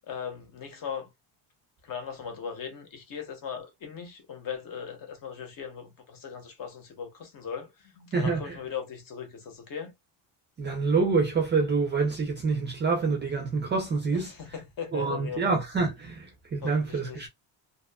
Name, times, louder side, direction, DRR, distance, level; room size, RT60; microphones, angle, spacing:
voice 1, 0.1-1.1 1.8-9.9 14.3-15.4 16.6-17.3, left 7 dB, 45° left, 0.9 m, -38 dB
voice 2, 8.1-8.6 10.6-14.3 14.9-17.3, right 4 dB, 25° right, 0.4 m, -27 dB
2.6 x 2.4 x 2.2 m
cardioid pair, 165°, 47 cm